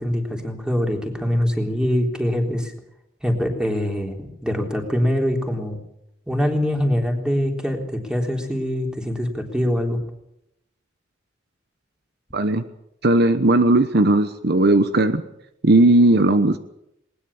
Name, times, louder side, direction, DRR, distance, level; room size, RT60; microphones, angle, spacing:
voice 1, 0.0-2.7 3.2-5.8 6.3-10.0, equal, 5° right, 3 dB, 3.7 m, -23 dB
voice 2, 12.3-12.6 13.0-15.2 15.6-16.6, right 2 dB, 55° right, 10 dB, 1.1 m, -16 dB
20.0 x 20.0 x 7.2 m, 0.80 s
head